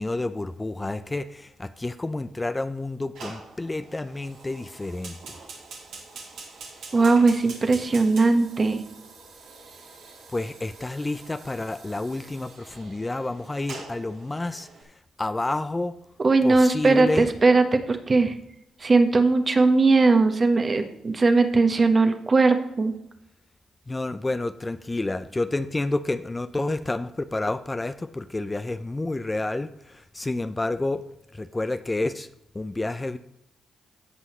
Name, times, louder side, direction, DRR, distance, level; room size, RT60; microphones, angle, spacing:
voice 1, 0.0-5.2 10.3-14.7 15.2-16.0 16.4-17.3 23.9-31.0 31.3-32.3 32.5-33.2, left 2 dB, 25° left, 11 dB, 0.5 m, -29 dB
Fire, 3.1-14.8, right 4 dB, 75° right, 2.0 m, -45 dB
voice 2, 6.9-8.8 16.2-18.3 18.8-22.9, right 3 dB, 40° right, 7 dB, 1.2 m, -19 dB
16.0 x 5.6 x 3.1 m, 0.83 s
hypercardioid pair, 45°, 0 cm